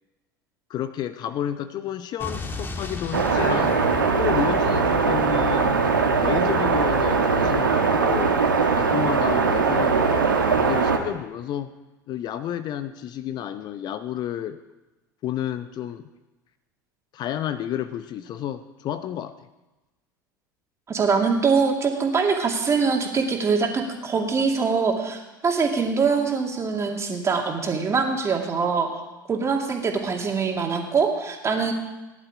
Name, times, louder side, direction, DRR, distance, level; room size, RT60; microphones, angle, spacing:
voice 1, 0.7-3.8 4.2-5.7 6.2-8.4 8.7-11.7 12.1-14.6 15.2-16.0 17.1-19.3, left 10 dB, 40° left, 11 dB, 0.8 m, -31 dB
Explosion, 2.2-6.2, left 3 dB, 20° left, 1.6 m, -37 dB
sound 1, 3.1-11.0, right 5 dB, 80° right, 1.5 m, -21 dB
Singing, 3.3-8.0, left 5 dB, 70° left, 3.0 m, -36 dB
voice 2, 20.9-28.9 29.3-31.7, right 5 dB, 25° right, 2 dB, 2.5 m, -23 dB
17.5 x 11.0 x 4.9 m, 1.1 s
figure-of-eight pair, 70°, 11 cm